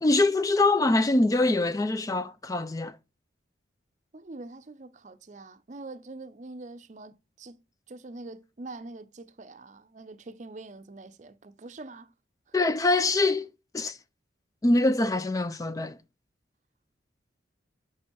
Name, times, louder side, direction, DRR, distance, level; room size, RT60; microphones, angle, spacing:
voice 1, 0.0-3.0 12.5-13.5 13.7-14.0 14.6-16.0, left 2 dB, 20° left, 0.3 m, -24 dB
voice 2, 4.1-7.6 7.9-12.1, right 2 dB, 40° right, 0.5 m, -44 dB
6.0 x 4.5 x 4.4 m
head